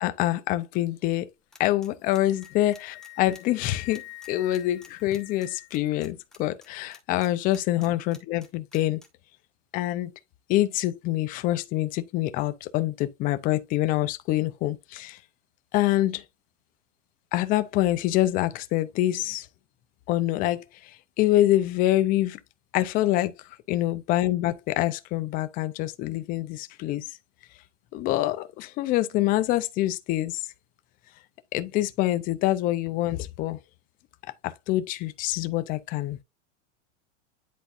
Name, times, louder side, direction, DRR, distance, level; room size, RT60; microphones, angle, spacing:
voice 1, 0.0-1.3 1.6-9.0 9.7-10.1 10.5-15.2 15.7-16.2 17.3-19.5 20.1-22.4 22.7-23.3 23.7-27.0 27.9-30.4 31.5-33.6 34.4-36.2, left 15 dB, 25° left, 0.5 m, -26 dB
sound 1, 1.5-9.1, left 2 dB, ahead, 1.0 m, -50 dB
Wind instrument woodwind instrument, 1.9-5.9, left 21 dB, 60° left, 1.2 m, -46 dB
10.0 x 4.0 x 2.5 m
supercardioid pair, 155°, 37 cm